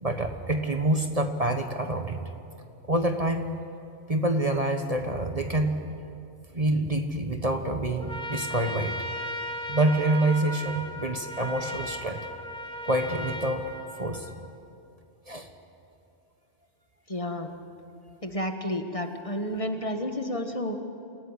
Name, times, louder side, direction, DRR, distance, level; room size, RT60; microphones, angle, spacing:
voice 1, 0.0-2.2 2.8-3.5 4.1-5.8 6.5-9.0 9.7-12.3 12.8-14.3 15.3-15.5, right 1 dB, 35° right, 5 dB, 1.3 m, -27 dB
Trumpet, 8.0-14.5, equal, 5° left, 2.3 m, -36 dB
voice 2, 17.1-17.5 18.2-20.8, left 1 dB, 30° left, 5 dB, 1.6 m, -31 dB
27.5 x 17.0 x 9.9 m, 2.7 s
omnidirectional pair, 1.2 m